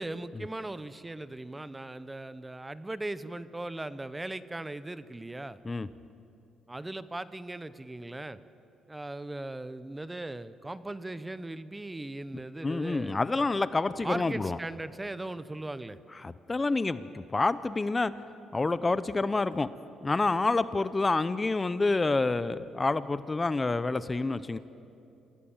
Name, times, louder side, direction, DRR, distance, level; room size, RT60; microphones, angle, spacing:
voice 1, 0.0-5.6 6.7-8.4 8.9-13.5 14.0-16.0, right 2 dB, 15° right, 15 dB, 0.7 m, -38 dB
voice 2, 12.6-14.6 16.2-18.1 18.5-19.7 20.0-24.6, left 3 dB, 25° left, 15 dB, 0.6 m, -28 dB
27.0 x 16.5 x 7.2 m, 2.7 s
cardioid pair, 90°, 0 cm